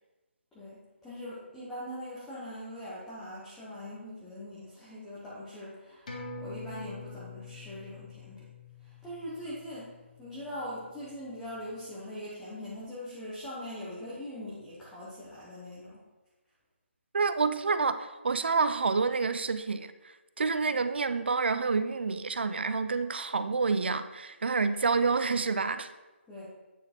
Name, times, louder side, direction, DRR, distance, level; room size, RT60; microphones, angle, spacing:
voice 1, 0.5-8.4 8.8-16.0 20.7-20.9 26.3-26.5, left 1 dB, 5° left, -10 dB, 0.7 m, -42 dB
sound 1, 6.1-11.0 11.4-11.5, left 3 dB, 40° left, 1.3 m, -46 dB
voice 2, 17.1-25.9, right 4 dB, 55° right, 11 dB, 0.5 m, -28 dB
9.0 x 4.4 x 4.2 m, 1.2 s
hypercardioid pair, 175°, 7 cm